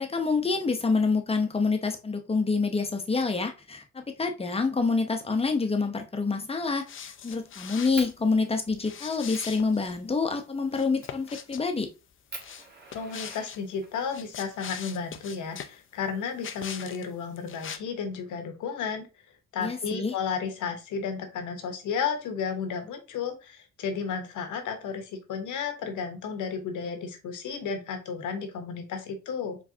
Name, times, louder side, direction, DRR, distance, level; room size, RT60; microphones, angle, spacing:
voice 1, 0.0-11.9 19.6-20.1, left 4 dB, 20° left, 5 dB, 0.8 m, -27 dB
Fire, 5.8-6.1 6.5-7.4 7.9-8.1 8.7-8.8 9.3-9.5 11.0-11.3 11.8-11.9 12.3-14.1 15.1-16.1, right 3 dB, 35° right, 1.4 m, -45 dB
sound 1, 6.9-8.1 8.8-9.9 10.7-11.6 12.4-13.6 14.0-15.8 16.4-17.1 17.4-17.8, left 8 dB, 45° left, 0.5 m, -41 dB
voice 2, 12.9-19.1 19.5-29.6, left 6 dB, 80° left, 6 dB, 1.1 m, -33 dB
4.7 x 3.2 x 2.7 m, 0.29 s
cardioid pair, 90°, 30 cm